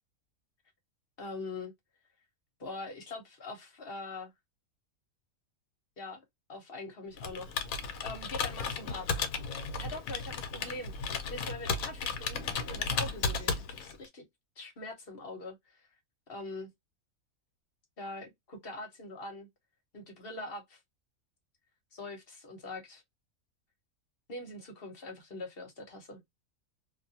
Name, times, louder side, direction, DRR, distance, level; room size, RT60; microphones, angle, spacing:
voice 1, 1.2-1.7 2.6-4.3 6.0-6.2 6.5-9.2 9.8-10.9 11.3-14.2 14.6-15.9 16.3-16.7 18.0-19.5 19.9-20.8 21.9-23.0 24.3-26.2, left 2 dB, 45° left, 1.0 m, -43 dB
Computer keyboard, 7.2-14.0, left 5 dB, 75° left, 1.1 m, -34 dB
2.5 x 2.5 x 2.7 m
omnidirectional pair, 1.5 m